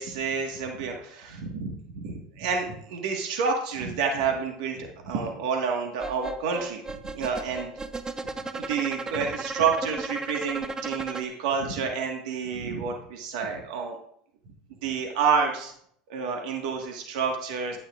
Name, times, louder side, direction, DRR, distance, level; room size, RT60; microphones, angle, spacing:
voice 1, 0.0-6.8 7.1-7.8 8.5-14.0 14.8-15.7 16.1-17.8, right 5 dB, 75° right, 2 dB, 1.6 m, -29 dB
sound 1, 6.0-11.3, right 3 dB, 15° right, 0.8 m, -35 dB
12.0 x 9.3 x 2.5 m, 0.66 s
hypercardioid pair, 90°, 4 cm